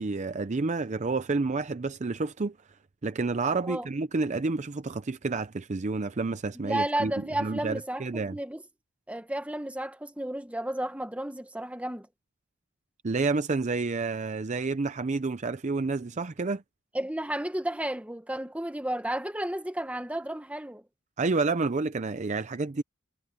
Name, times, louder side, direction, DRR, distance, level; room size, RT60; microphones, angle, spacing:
voice 1, 0.0-2.6 3.0-8.4 13.0-16.6 21.2-22.8, right 3 dB, 35° right, 0.6 m, -29 dB
voice 2, 6.5-8.6 9.1-12.1 16.9-20.8, right 1 dB, 5° right, 1.4 m, -32 dB
head